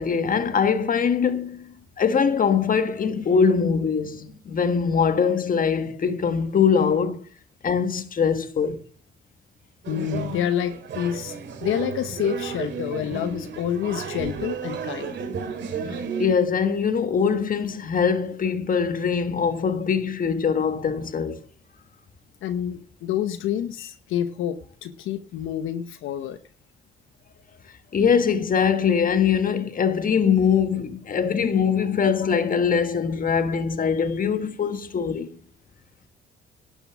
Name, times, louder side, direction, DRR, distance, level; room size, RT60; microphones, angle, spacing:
voice 1, 0.0-7.2 7.6-8.8 16.2-21.4 27.9-35.3, left 6 dB, 45° left, 1.5 m, -22 dB
sound 1, 9.8-16.3, right 5 dB, 65° right, 2.4 m, -32 dB
voice 2, 9.9-11.4 11.6-15.2 22.4-26.4, left 10 dB, 85° left, 1.0 m, -28 dB
12.0 x 7.2 x 7.5 m
cardioid pair, 90°, 20 cm